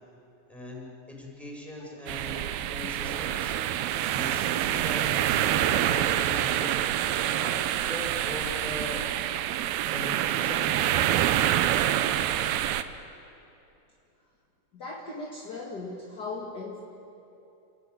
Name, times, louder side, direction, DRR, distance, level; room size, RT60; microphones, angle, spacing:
voice 1, 0.5-3.5 4.1-6.8 7.2-7.5 7.8-9.3 9.9-10.8, left 1 dB, ahead, -3 dB, 5.5 m, -40 dB
sound 1, 2.1-12.8, right 12 dB, 85° right, 2.6 m, -26 dB
voice 2, 14.7-16.8, left 3 dB, 35° left, -1 dB, 1.7 m, -38 dB
29.0 x 15.0 x 9.4 m, 2.8 s
omnidirectional pair, 4.3 m